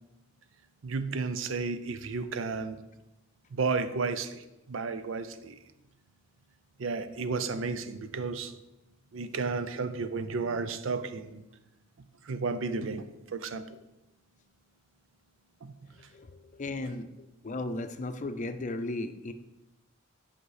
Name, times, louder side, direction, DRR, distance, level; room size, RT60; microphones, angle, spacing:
voice 1, 0.8-2.8 3.5-5.6 6.8-8.5 9.1-11.4 12.2-13.8 15.6-16.1, right 4 dB, 75° right, 11 dB, 0.6 m, -33 dB
voice 2, 16.1-19.3, left 2 dB, 40° left, 9 dB, 0.5 m, -36 dB
8.0 x 5.1 x 4.9 m, 0.97 s
head